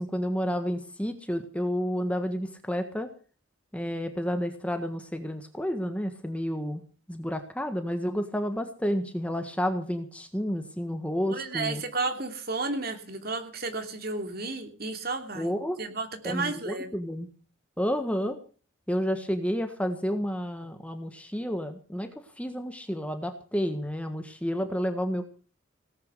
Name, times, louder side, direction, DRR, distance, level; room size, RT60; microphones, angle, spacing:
voice 1, 0.0-3.1 3.7-6.8 7.1-11.8 15.3-15.8 16.2-17.3 17.8-18.4 18.9-25.3, equal, 5° left, 7 dB, 1.5 m, -30 dB
voice 2, 11.3-16.9, right 3 dB, 50° right, 7 dB, 2.9 m, -33 dB
18.0 x 9.5 x 6.8 m, 0.39 s
head